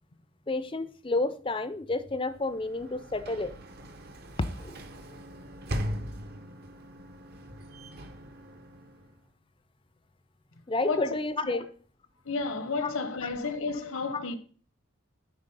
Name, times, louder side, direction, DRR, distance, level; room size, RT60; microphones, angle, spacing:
voice 1, 0.5-3.6 4.4-4.8 10.7-11.7 12.8-12.9 14.1-14.2, left 2 dB, 25° left, 0.5 m, -30 dB
Sliding door / Slam, 2.3-9.3, equal, 45° right, 0.8 m, -40 dB
voice 2, 10.8-11.1 11.4-11.6 12.2-14.4, left 4 dB, 75° left, 1.0 m, -32 dB
8.9 x 4.1 x 5.4 m
head